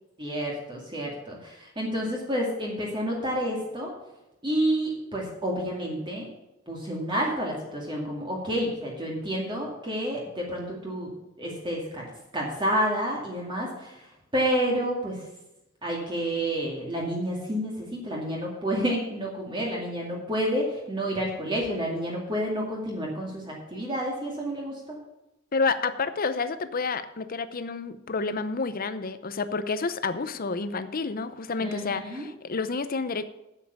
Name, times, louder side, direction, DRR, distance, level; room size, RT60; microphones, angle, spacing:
voice 1, 0.2-3.9 4.4-6.2 6.7-11.1 11.4-12.1 12.3-14.0 14.3-15.2 15.8-25.0 31.6-32.3, equal, 25° right, -3 dB, 2.3 m, -29 dB
voice 2, 25.5-33.2, left 4 dB, 45° left, 12 dB, 0.7 m, -29 dB
8.7 x 7.7 x 6.9 m, 0.93 s
head